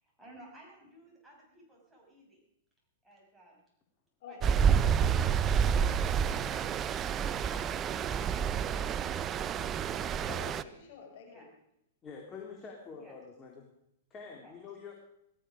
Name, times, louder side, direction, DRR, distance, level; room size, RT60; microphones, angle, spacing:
voice 1, 0.0-2.4 3.0-3.6 4.3-4.4 11.2-11.5 13.0-13.2 14.4-14.5, right 1 dB, 5° right, -3 dB, 6.2 m, -56 dB
voice 2, 4.2-5.1 10.0-11.5, left 6 dB, 60° left, 2 dB, 5.9 m, -49 dB
Stream, 4.4-10.6, right 7 dB, 25° right, 0.6 m, -29 dB
voice 3, 12.0-13.7 14.1-14.9, left 5 dB, 25° left, 0 dB, 3.2 m, -46 dB
18.0 x 13.5 x 5.0 m, 0.77 s
hypercardioid pair, 130°, 0 cm